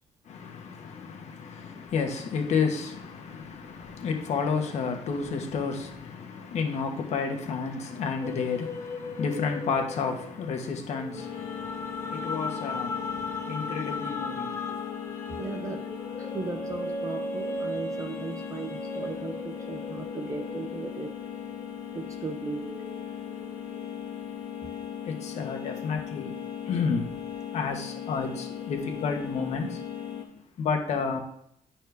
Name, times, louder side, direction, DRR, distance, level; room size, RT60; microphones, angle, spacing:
voice 1, 0.2-14.7 25.0-26.3 26.6-27.1 27.5-29.8 30.6-31.2, left 5 dB, 60° left, 1.3 m, -31 dB
sound 1, 8.2-22.0 22.4-24.0, left 2 dB, 20° left, 0.7 m, -38 dB
sound 2, 11.1-30.2, left 9 dB, 75° left, 1.6 m, -38 dB
voice 2, 15.4-15.9 16.2-21.2 21.9-22.8, right 4 dB, 25° right, 0.6 m, -37 dB
10.5 x 4.3 x 3.5 m
cardioid pair, 140°, 13 cm